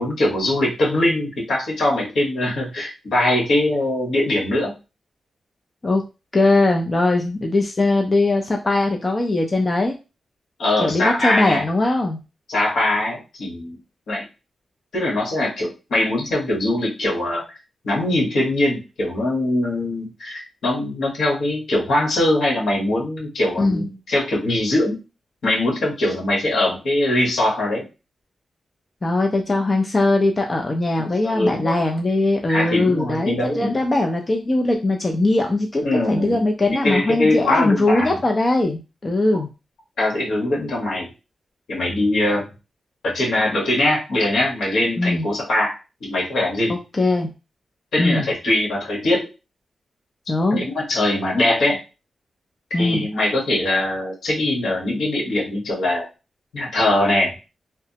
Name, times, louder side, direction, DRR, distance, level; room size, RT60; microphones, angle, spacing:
voice 1, 0.0-4.7 10.6-11.6 12.5-13.8 14.1-14.2 14.9-17.4 17.8-25.0 25.4-27.9 31.0-31.8 32.5-33.8 35.8-36.4 36.7-38.2 40.0-41.1 41.7-42.5 43.0-46.8 47.9-49.3 50.5-51.8 52.7-56.0 56.5-57.3, left 1 dB, 80° left, -2 dB, 1.3 m, -22 dB
voice 2, 6.3-10.0 10.8-12.2 23.6-23.8 29.0-39.5 45.0-45.3 46.7-47.3 48.0-48.3 50.3-50.6 52.7-53.1, left 2 dB, 30° left, 2 dB, 0.4 m, -20 dB
3.2 x 2.0 x 2.7 m, 0.28 s
wide cardioid pair, 105°, 0 cm